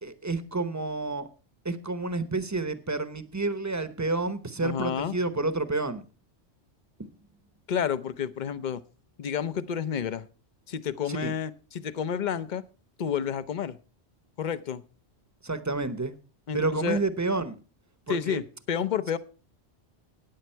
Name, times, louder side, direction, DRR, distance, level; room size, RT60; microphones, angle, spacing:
voice 1, 0.0-1.3 1.6-6.0 7.0-7.1 11.1-11.3 15.4-16.1 16.5-17.6 18.1-18.4, right 3 dB, 15° right, 0.9 m, -29 dB
voice 2, 4.6-5.2 7.7-8.8 9.2-10.3 10.7-12.6 13.0-13.8 14.4-14.8 16.5-17.0 18.1-19.2, left 8 dB, 45° left, 0.8 m, -30 dB
14.5 x 9.4 x 4.5 m
omnidirectional pair, 1.2 m